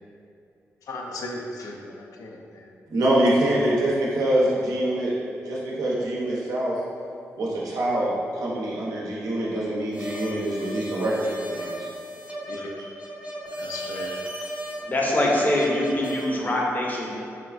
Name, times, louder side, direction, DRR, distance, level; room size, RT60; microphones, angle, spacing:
voice 1, 0.9-2.7 5.2-5.5 10.3-10.7 12.5-12.8 13.6-14.2, left 2 dB, 75° left, 0 dB, 0.3 m, -37 dB
voice 2, 2.9-5.1 5.5-6.8 7.4-11.7 14.0-14.1, right 1 dB, 80° right, -5 dB, 0.5 m, -24 dB
sound 1, 9.9-16.3, right 1 dB, 20° right, 0.7 m, -36 dB
voice 3, 14.8-17.1, left 1 dB, 30° left, -2 dB, 0.6 m, -23 dB
3.0 x 2.3 x 2.3 m, 2.5 s
supercardioid pair, 50°, 6 cm